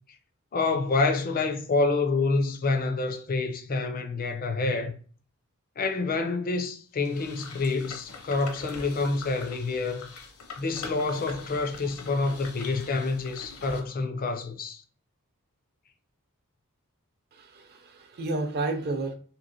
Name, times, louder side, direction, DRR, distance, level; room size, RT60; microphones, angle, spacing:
voice 1, 0.5-5.0 5.8-10.1 10.6-14.8, left 3 dB, 40° left, 0.4 m, -27 dB
sound 1, 7.0-13.8, left 4 dB, 75° left, 0.7 m, -43 dB
voice 2, 17.4-19.1, right 2 dB, 50° right, 0.6 m, -31 dB
3.0 x 2.8 x 2.6 m
head